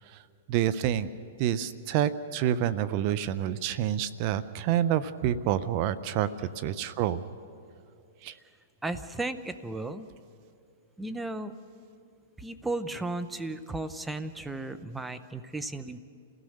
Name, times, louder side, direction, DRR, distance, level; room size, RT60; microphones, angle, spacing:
voice 1, 0.5-1.1 1.4-6.3 6.6-7.2 8.2-8.3, right 11 dB, 50° right, 14 dB, 0.8 m, -28 dB
voice 2, 8.8-10.1 11.0-11.5 12.4-16.0, right 2 dB, 5° right, 10 dB, 1.0 m, -35 dB
28.5 x 16.5 x 6.6 m, 2.5 s
hypercardioid pair, 125°, 0 cm